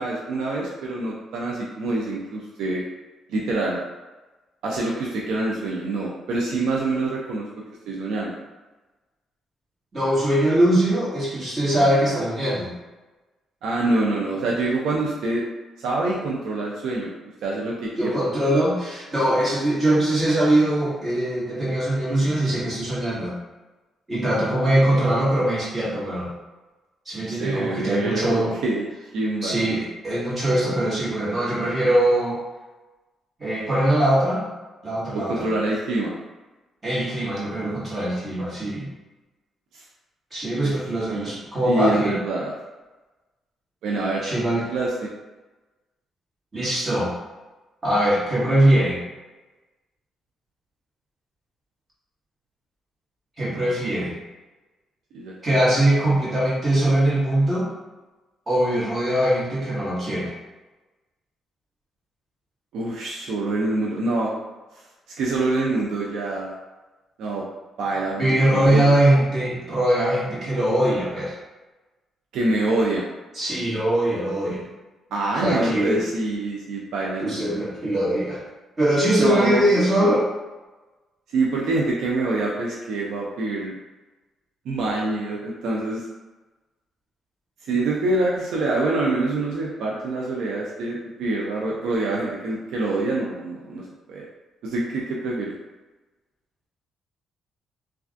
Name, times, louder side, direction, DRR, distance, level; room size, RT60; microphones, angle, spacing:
voice 1, 0.0-2.8 3.3-3.8 4.6-7.5 7.9-8.4 13.6-15.5 15.8-17.1 17.4-18.2 27.3-28.9 29.1-29.5 35.1-36.1 39.7-39.8 40.6-40.7 41.1-41.3 41.6-42.5 43.8-44.2 44.7-45.1 55.1-55.3 62.7-64.3 65.2-66.5 67.2-67.4 67.8-68.9 72.3-73.0 75.1-77.5 79.2-79.7 81.3-83.7 84.7-86.1 87.7-94.2 94.6-95.5, right 2 dB, 80° right, -3 dB, 0.4 m, -25 dB
voice 2, 9.9-12.7 18.0-23.3 24.1-26.3 27.0-28.5 29.4-32.4 33.4-34.5 34.8-35.5 36.8-38.9 40.3-42.2 44.2-44.6 46.5-47.1 47.8-49.0 53.4-54.2 55.4-57.7 58.5-60.3 68.2-71.3 73.3-74.6 75.4-76.0 77.2-78.4 78.8-80.3, right 1 dB, 30° right, -8 dB, 1.5 m, -21 dB
3.2 x 2.3 x 2.5 m, 1.2 s
cardioid pair, 90°, 0 cm